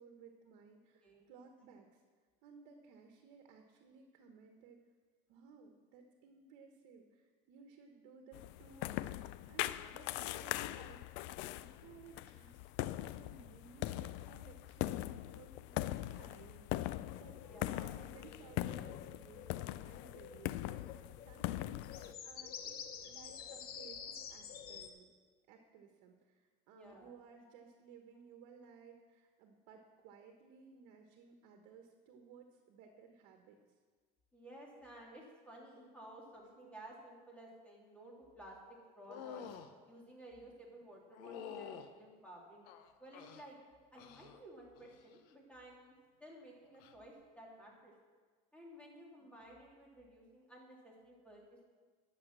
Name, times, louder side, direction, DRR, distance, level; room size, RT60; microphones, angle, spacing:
voice 1, 0.0-2.0 2.4-4.8 5.3-9.2 9.5-22.8 23.0-25.1 25.5-33.6 40.3-40.6 49.2-49.3, right 5 dB, 80° right, 4 dB, 1.2 m, -59 dB
sound 1, 8.3-22.1, left 15 dB, 70° left, 0.4 m, -41 dB
voice 2, 9.6-9.9 17.4-17.9 26.7-27.1 27.4-27.5 34.3-39.5 39.9-42.6 43.0-43.6 43.9-45.9 46.2-47.9 48.5-51.7, right 1 dB, 5° left, -3 dB, 3.0 m, -55 dB
sound 2, 16.8-24.9, left 7 dB, 50° left, 1.1 m, -50 dB
sound 3, 39.1-39.7 41.1-41.9 42.6-43.5 44.0-44.4 44.7-45.2 46.7-46.9, left 8 dB, 90° left, 0.9 m, -48 dB
11.5 x 6.6 x 7.4 m, 1.5 s
cardioid pair, 125°, 20 cm